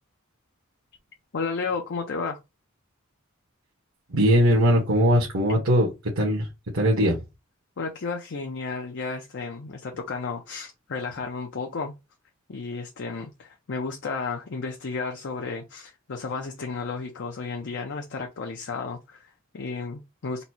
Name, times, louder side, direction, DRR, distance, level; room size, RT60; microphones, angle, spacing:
voice 1, 1.3-2.4 7.8-12.0 12.5-20.4, left 4 dB, 60° left, 0.6 m, -33 dB
voice 2, 4.1-5.9 6.2-6.5 6.7-7.2, equal, 85° right, 1.3 m, -20 dB
4.1 x 2.1 x 4.3 m
head